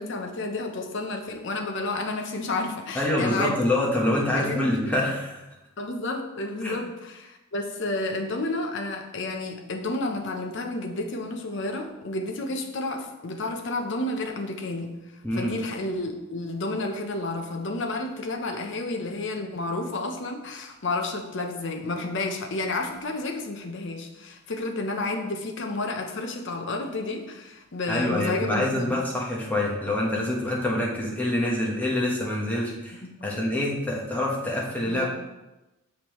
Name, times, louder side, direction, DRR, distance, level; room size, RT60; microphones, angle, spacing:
voice 1, 0.0-3.6 4.3-5.0 5.8-14.9 15.4-29.0 33.0-33.3 34.8-35.1, left 2 dB, 55° left, 4 dB, 0.7 m, -31 dB
voice 2, 2.9-5.4 6.6-6.8 15.2-15.5 27.9-35.1, left 1 dB, 5° left, -4 dB, 1.1 m, -26 dB
6.9 x 5.2 x 3.1 m, 1.0 s
head